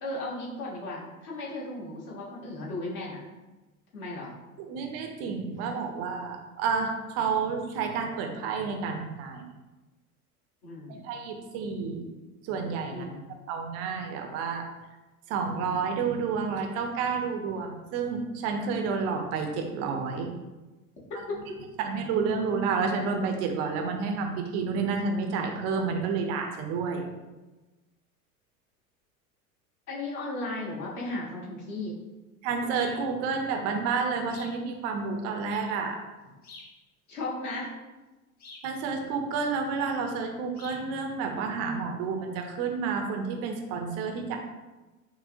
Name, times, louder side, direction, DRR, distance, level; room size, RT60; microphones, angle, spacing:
voice 1, 0.0-3.2 3.9-4.3 10.6-11.0 12.9-13.3 21.3-21.6 29.9-31.9 37.1-37.7, left 2 dB, 40° left, -4 dB, 1.3 m, -35 dB
voice 2, 4.6-9.4 11.0-12.1 12.4-13.1 13.5-14.7 15.3-20.3 21.1-21.2 21.8-27.1 32.4-36.0 38.6-44.4, right 5 dB, 35° right, 3 dB, 0.5 m, -30 dB
sound 1, 32.7-33.1 34.3-34.6 36.4-36.8 38.4-38.7 40.5-40.9, left 3 dB, 20° left, 0.6 m, -48 dB
5.5 x 2.1 x 2.6 m, 1.1 s
figure-of-eight pair, 75°, 44 cm